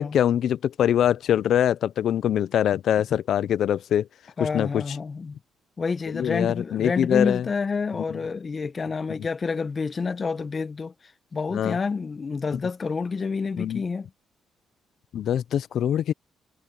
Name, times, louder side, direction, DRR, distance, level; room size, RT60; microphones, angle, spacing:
voice 1, 0.0-4.1 4.4-5.0 6.1-7.4 11.5-11.8 13.6-13.8 15.1-16.1, left 10 dB, 70° left, 0.8 m, -23 dB
voice 2, 4.4-5.4 5.8-10.9 11.3-14.1, left 4 dB, 35° left, 1.3 m, -28 dB
cardioid pair, 90°, 0 cm